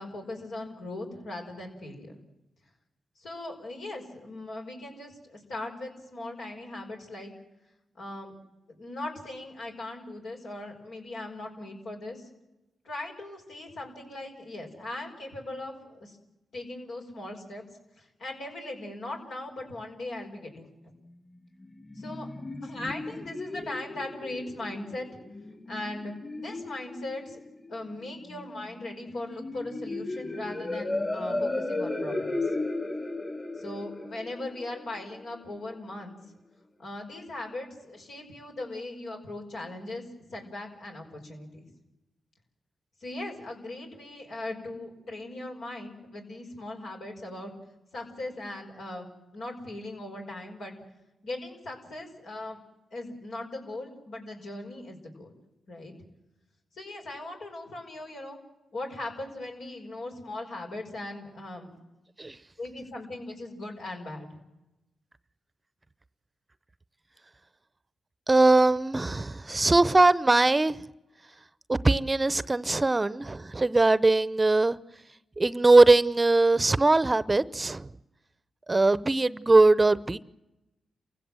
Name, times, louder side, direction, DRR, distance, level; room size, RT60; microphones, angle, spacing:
voice 1, 0.0-2.2 3.2-7.3 7.9-8.3 8.7-12.3 12.8-16.2 16.5-17.6 18.0-20.7 21.9-22.3 22.6-25.1 25.7-27.4 27.7-32.5 33.6-36.2 36.8-40.0 40.3-41.7 43.0-47.5 47.9-49.1 49.3-50.7 51.2-52.6 52.9-55.3 55.7-55.9 56.7-58.4 58.7-61.7 62.6-64.4, left 2 dB, 80° left, 5.5 m, -39 dB
sound 1, 21.5-35.5, left 2 dB, 30° left, 3.3 m, -35 dB
voice 2, 68.3-70.8 71.7-74.8 75.4-77.9 78.7-80.2, right 2 dB, 30° right, 0.7 m, -21 dB
28.0 x 16.0 x 7.7 m
cardioid pair, 55°, 0 cm